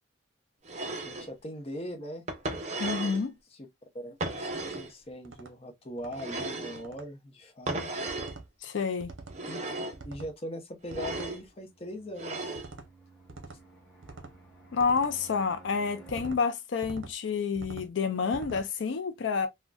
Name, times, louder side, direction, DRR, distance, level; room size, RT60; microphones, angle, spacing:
sound 1, 0.7-1.3 2.3-3.3 4.2-4.9 6.2-6.8 7.7-8.4 9.3-10.0 10.9-11.4 12.2-12.7, right 2 dB, 35° right, 0.5 m, -35 dB
voice 1, 0.8-2.2 3.5-3.7 3.9-7.9 9.5-9.7 10.0-12.6, equal, 30° left, 0.7 m, -41 dB
voice 2, 2.8-3.3 8.6-9.1 14.7-19.5, left 5 dB, 75° left, 0.4 m, -29 dB
sound 2, 4.5-4.8 5.2-5.5 6.0-6.3 6.8-7.1 8.1-8.5 9.0-9.4 9.9-10.3 10.9-11.3 12.6-12.9 13.3-13.6 14.0-14.4 14.8-15.1 16.1-16.4 16.8-17.1 17.6-17.9 18.3-18.7, right 3 dB, 85° right, 0.7 m, -45 dB
Fixed-wing aircraft airplane, 11.4-16.3, right 2 dB, 10° left, 1.3 m, -54 dB
3.7 x 2.2 x 2.2 m
head